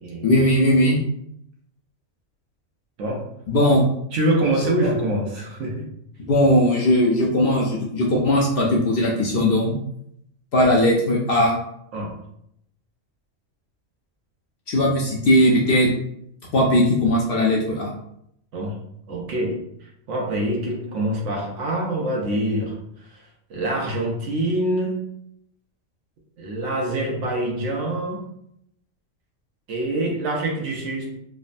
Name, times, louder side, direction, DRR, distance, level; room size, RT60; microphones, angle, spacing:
voice 1, 0.2-1.0 3.5-3.8 4.8-4.9 6.3-9.7 10.5-11.6 14.7-15.9 16.5-17.9, left 1 dB, 60° left, -2 dB, 0.6 m, -18 dB
voice 2, 3.0-3.3 4.1-5.9 11.9-12.1 18.5-18.8 19.1-23.2 23.5-25.0 26.4-28.2 29.7-31.2, right 1 dB, 70° right, -1 dB, 1.0 m, -25 dB
3.2 x 2.0 x 2.5 m, 0.74 s
omnidirectional pair, 1.3 m